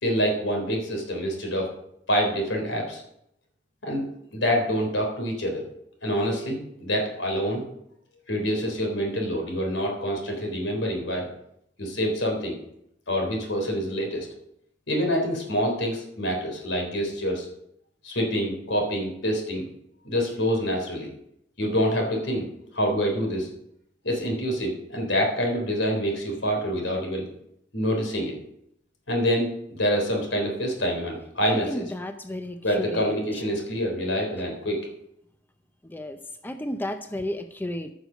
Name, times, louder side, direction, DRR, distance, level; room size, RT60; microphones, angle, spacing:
voice 1, 0.0-1.7 2.1-3.0 3.8-4.1 4.3-5.7 6.0-7.6 8.3-11.3 11.8-12.6 13.1-14.3 14.9-17.5 18.0-19.6 20.0-21.1 21.6-22.5 22.7-23.5 24.0-27.2 27.7-28.3 29.1-31.8 32.6-34.8, equal, 85° left, 1 dB, 3.8 m, -26 dB
voice 2, 31.5-33.2 35.8-37.9, left 1 dB, 10° left, 7 dB, 0.6 m, -33 dB
14.5 x 6.4 x 5.2 m, 0.77 s
head